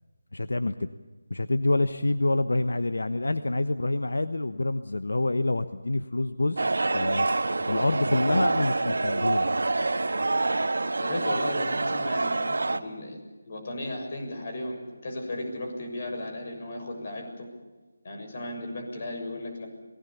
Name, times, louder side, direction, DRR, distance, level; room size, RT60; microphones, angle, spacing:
voice 1, 0.3-0.9 1.3-7.3 7.7-9.5, left 2 dB, 80° left, 11 dB, 1.1 m, -27 dB
sound 1, 6.6-12.8, right 2 dB, 75° right, 1.5 m, -26 dB
voice 2, 11.0-17.5 18.0-19.7, left 1 dB, 40° left, 4 dB, 6.9 m, -35 dB
27.5 x 19.5 x 7.0 m, 1.3 s
figure-of-eight pair, 165°, 0 cm